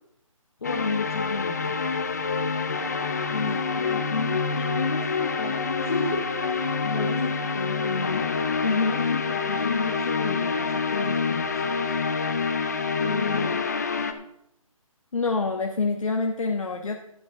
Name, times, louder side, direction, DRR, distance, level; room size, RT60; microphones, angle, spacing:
voice 1, 0.6-1.8 3.3-8.3 8.7-12.0 12.9-13.6, left 4 dB, 45° left, 1 dB, 1.2 m, -33 dB
sound 1, 0.6-14.1, left 5 dB, 30° left, 0.6 m, -27 dB
voice 2, 8.6-9.0 15.1-17.0, left 4 dB, 65° left, 3 dB, 1.1 m, -26 dB
11.5 x 10.5 x 3.8 m, 0.76 s
hypercardioid pair, 170°, 18 cm